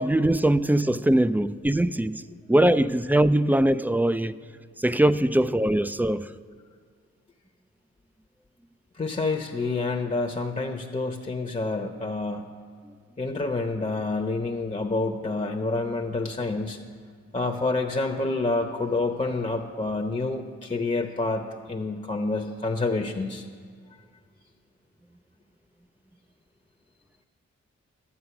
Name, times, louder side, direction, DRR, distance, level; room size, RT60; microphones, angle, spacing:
voice 1, 0.0-4.4 4.8-6.2, right 1 dB, 5° right, 0.3 m, -22 dB
voice 2, 9.0-12.5 13.2-16.8 17.3-23.4, left 3 dB, 25° left, 0.8 m, -28 dB
11.0 x 7.6 x 5.9 m
cardioid pair, 50°, 29 cm